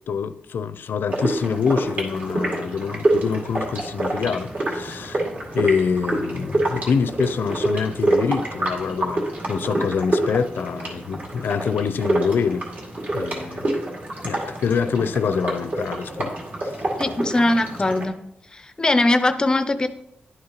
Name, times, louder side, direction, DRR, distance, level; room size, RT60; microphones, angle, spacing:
voice 1, 0.1-5.3 5.5-12.6 13.1-13.7 14.2-16.3 16.6-16.7, left 6 dB, 80° left, 0.5 m, -25 dB
sound 1, 1.1-18.0, right 1 dB, 50° right, 2.2 m, -27 dB
voice 2, 17.0-18.2 18.5-19.9, left 2 dB, 25° left, 0.4 m, -20 dB
11.0 x 6.7 x 2.9 m
wide cardioid pair, 175°, 3 cm